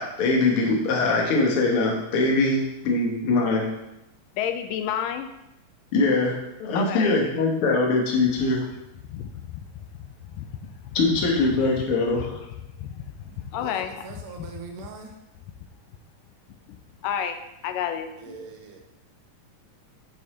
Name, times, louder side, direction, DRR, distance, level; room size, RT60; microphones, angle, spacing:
voice 1, 0.0-3.7 5.9-8.6 10.9-12.4, left 3 dB, 55° left, 1.8 m, -22 dB
voice 2, 4.4-5.3 6.8-7.2 9.1-9.7 10.2-11.0 11.5-11.7 12.1-12.3 12.8-14.5 17.0-18.1, left 9 dB, 85° left, 2.1 m, -31 dB
voice 3, 14.0-15.1 18.3-18.8, right 4 dB, 70° right, 1.8 m, -40 dB
6.3 x 5.9 x 4.2 m
omnidirectional pair, 3.8 m